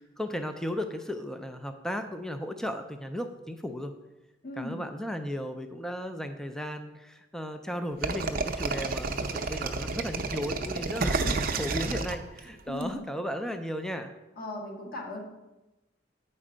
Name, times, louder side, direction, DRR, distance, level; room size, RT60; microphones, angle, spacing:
voice 1, 0.0-3.9 4.6-11.2 11.6-14.1, equal, 5° left, 6 dB, 0.4 m, -35 dB
voice 2, 4.4-4.8 11.1-11.5 12.7-13.0 14.4-15.2, left 1 dB, 50° left, -1 dB, 1.5 m, -37 dB
sound 1, 8.0-12.8, right 3 dB, 50° right, 0.6 m, -30 dB
8.3 x 4.3 x 5.0 m, 1.0 s
head